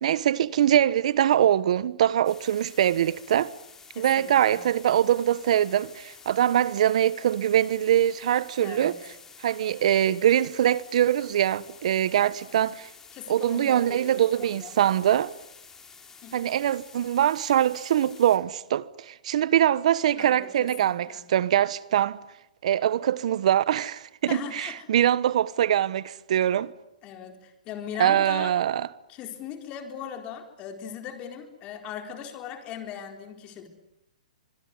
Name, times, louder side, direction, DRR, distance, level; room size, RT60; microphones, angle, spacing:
voice 1, 0.0-3.5 4.0-9.0 9.4-12.9 13.3-15.3 16.3-22.2 22.6-26.7 28.0-28.9, right 11 dB, 60° right, 1.1 m, -23 dB
sound 1, 2.2-18.4, left 5 dB, 10° left, 3.3 m, -50 dB
voice 2, 3.9-4.6 8.6-9.0 13.1-14.7 16.2-16.6 20.2-21.3 24.3-24.9 27.0-28.5 29.1-33.7, left 8 dB, 25° left, 4.2 m, -39 dB
25.0 x 22.0 x 9.7 m
hypercardioid pair, 150°, 4 cm